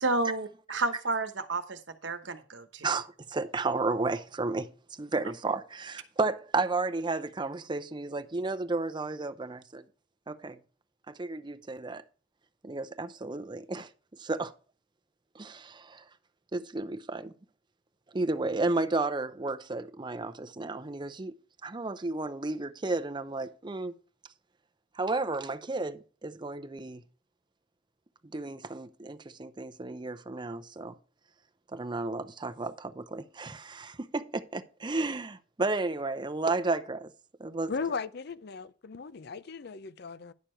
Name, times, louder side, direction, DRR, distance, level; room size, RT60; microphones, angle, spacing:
voice 1, 0.0-2.9, right 3 dB, 75° right, 1.1 m, -31 dB
voice 2, 2.8-4.7 5.0-9.8 10.3-10.6 11.1-12.0 12.6-13.9 14.2-14.5 15.3-16.1 16.5-17.3 18.1-21.3 21.6-23.9 25.0-27.0 28.3-31.0 31.7-37.1 37.4-37.7, right 3 dB, 25° right, 0.6 m, -32 dB
voice 3, 37.7-40.3, left 5 dB, 60° left, 0.5 m, -37 dB
10.5 x 6.7 x 4.4 m
head